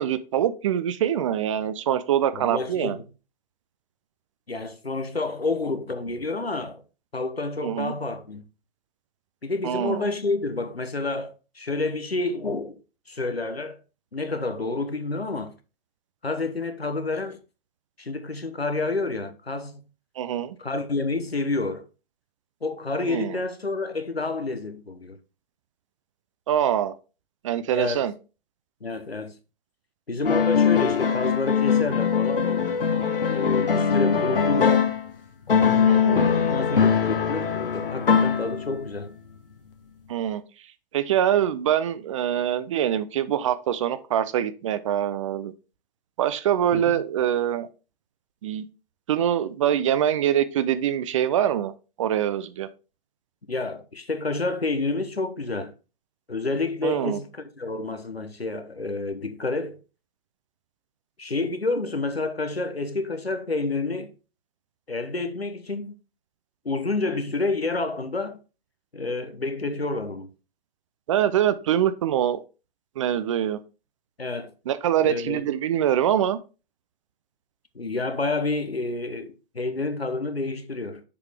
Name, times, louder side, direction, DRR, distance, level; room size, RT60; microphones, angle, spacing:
voice 1, 0.0-3.0 7.6-7.9 9.6-10.0 20.2-20.6 23.1-23.3 26.5-26.9 27.4-28.1 35.9-36.3 40.1-40.4 40.9-45.5 46.2-47.7 48.4-48.7 49.1-51.7 52.0-52.7 56.8-57.2 71.1-72.4 73.0-73.6 74.7-76.4, right 10 dB, 35° right, 0.5 m, -24 dB
voice 2, 2.3-3.0 4.5-6.8 7.1-8.4 9.4-12.8 13.1-13.8 14.1-15.5 16.2-17.4 18.0-19.8 20.6-21.9 22.6-25.2 27.7-28.0 28.8-29.4 30.1-32.7 33.3-34.9 36.1-39.1 46.7-47.0 53.5-55.7 56.3-59.8 61.2-64.1 64.9-65.9 66.6-68.4 68.9-70.3 74.2-74.5 75.0-75.4 77.7-81.0, left 3 dB, 85° left, 1.1 m, -29 dB
sound 1, 30.2-35.1 35.5-38.8, left 6 dB, 65° left, 1.2 m, -22 dB
7.0 x 4.9 x 3.4 m
figure-of-eight pair, 120°, 30 cm